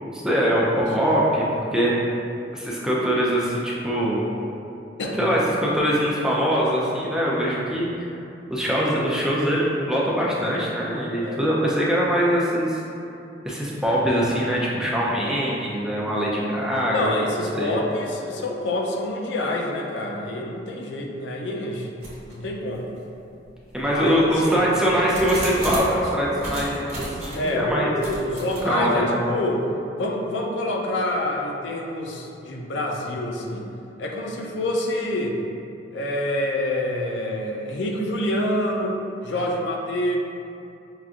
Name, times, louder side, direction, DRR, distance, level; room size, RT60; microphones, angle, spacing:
voice 1, 0.1-1.4 1.7-1.9 2.5-4.2 5.1-7.9 8.5-12.8 13.4-17.1 17.5-17.8 23.7-27.9 28.6-29.2, equal, 5° right, -6 dB, 0.4 m, -22 dB
voice 2, 16.9-21.9 22.3-22.9 23.8-24.7 27.3-29.6 30.0-33.7 34.0-35.4 35.9-40.2, left 1 dB, 70° left, 0 dB, 0.4 m, -27 dB
sound 1, 22.0-22.4 23.0-23.1 23.8-26.0 26.4-27.5 28.0-28.6, right 1 dB, 35° right, 1.1 m, -33 dB
5.6 x 2.4 x 2.5 m, 2.7 s
head